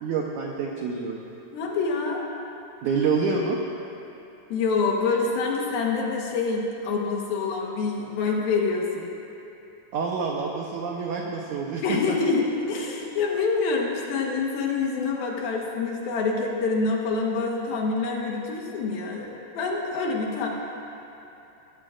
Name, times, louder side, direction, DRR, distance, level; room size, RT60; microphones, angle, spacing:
voice 1, 0.0-1.2 2.8-3.6 9.9-12.2, right 5 dB, 85° right, -1 dB, 1.7 m, -27 dB
voice 2, 1.5-2.3 4.5-9.1 11.8-20.5, left 4 dB, 70° left, -1 dB, 2.9 m, -26 dB
21.5 x 15.5 x 2.5 m, 3.0 s
omnidirectional pair, 4.8 m